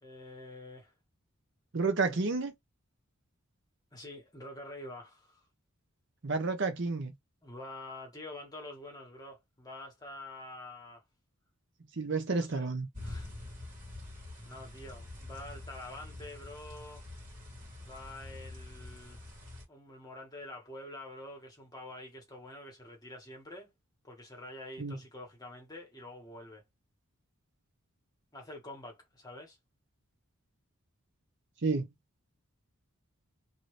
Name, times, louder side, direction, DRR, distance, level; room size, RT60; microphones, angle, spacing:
voice 1, 0.0-0.9 2.0-2.2 3.9-5.5 7.4-11.0 12.4-12.7 13.0-13.3 14.5-17.0 17.8-19.3 19.7-23.7 24.0-26.6 28.3-29.6, left 1 dB, 15° left, 1.3 m, -47 dB
voice 2, 1.7-2.5 6.2-7.1 12.0-12.9 24.8-25.0 31.6-31.9, right 3 dB, 55° right, 0.7 m, -30 dB
sound 1, 12.9-19.6, left 2 dB, 35° right, 1.6 m, -46 dB
2.7 x 2.7 x 3.1 m
head